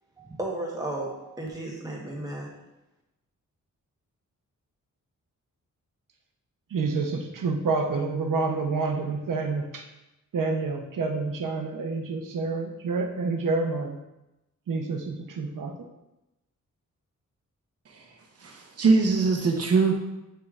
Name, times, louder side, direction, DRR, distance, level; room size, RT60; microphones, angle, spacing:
voice 1, 0.2-2.5, right 1 dB, 10° right, -3 dB, 1.1 m, -34 dB
voice 2, 6.7-9.9 10.3-14.0 14.7-15.7, right 4 dB, 85° right, 3 dB, 0.8 m, -28 dB
voice 3, 18.4-19.9, right 4 dB, 50° right, 1 dB, 0.9 m, -22 dB
7.8 x 5.2 x 2.4 m, 0.93 s
wide cardioid pair, 175°, 32 cm